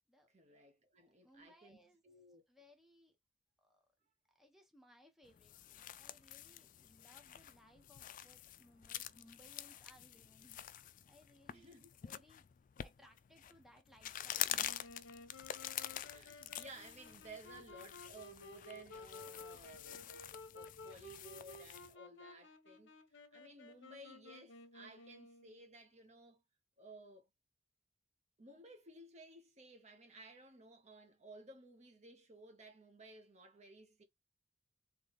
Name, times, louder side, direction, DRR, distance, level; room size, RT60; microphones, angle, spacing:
voice 1, 0.3-1.8 2.0-2.4 11.5-11.9 15.8-20.3 20.5-26.4 26.8-27.3 28.4-34.0, right 2 dB, 35° right, 0.8 m, -57 dB
voice 2, 1.0-2.0 2.5-3.2 3.6-3.9 4.3-10.6 11.1-11.8 12.0-12.4 12.8-15.0, equal, ahead, 1.0 m, -65 dB
sound 1, 5.2-21.9, left 12 dB, 45° left, 0.3 m, -47 dB
Wind instrument woodwind instrument, 14.6-25.7, left 2 dB, 70° left, 0.9 m, -55 dB
4.0 x 3.1 x 3.3 m
head